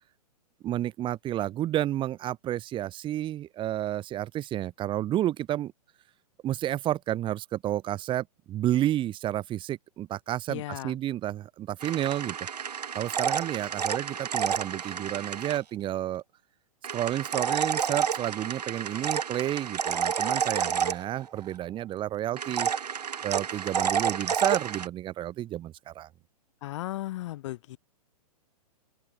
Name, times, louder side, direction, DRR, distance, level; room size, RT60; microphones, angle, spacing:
voice 1, 0.6-5.7 6.4-12.4 12.9-16.2 16.9-22.7 23.2-26.1, right 13 dB, 25° right, 1.7 m, -31 dB
voice 2, 10.5-10.9 26.6-27.8, left 16 dB, 50° left, 0.9 m, -35 dB
sound 1, 11.8-15.6 16.8-21.5 22.4-24.9, right 7 dB, 85° right, 0.5 m, -30 dB
open air
figure-of-eight pair, 115°, 20 cm